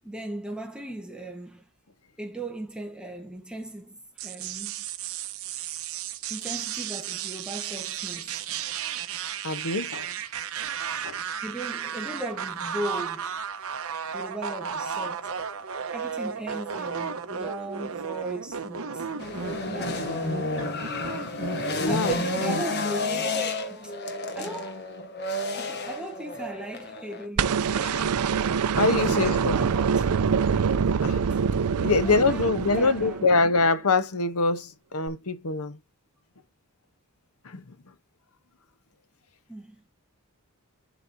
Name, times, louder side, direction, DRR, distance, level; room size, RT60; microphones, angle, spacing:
voice 1, 0.0-1.7 2.2-4.7 6.3-8.4 11.4-13.7 14.1-15.3 15.9-19.1 19.7-20.4 21.3-21.6 21.8-23.9 24.3-24.9 25.5-28.0 29.1-30.3 31.3-31.4 32.0-33.4 39.5-39.8, right 2 dB, 5° right, 1.2 m, -38 dB
sound 1, 4.2-22.6, right 7 dB, 70° right, 0.9 m, -34 dB
voice 2, 9.4-10.1 11.0-11.2 21.7-22.1 22.4-22.6 27.8-28.1 28.8-29.6 31.0-31.2 31.8-35.8 37.4-37.6, left 3 dB, 75° left, 0.9 m, -24 dB
sound 2, 19.2-27.3, left 2 dB, 50° left, 1.2 m, -31 dB
sound 3, 27.4-33.5 35.1-35.2, right 6 dB, 90° right, 0.5 m, -25 dB
11.0 x 4.2 x 2.6 m
head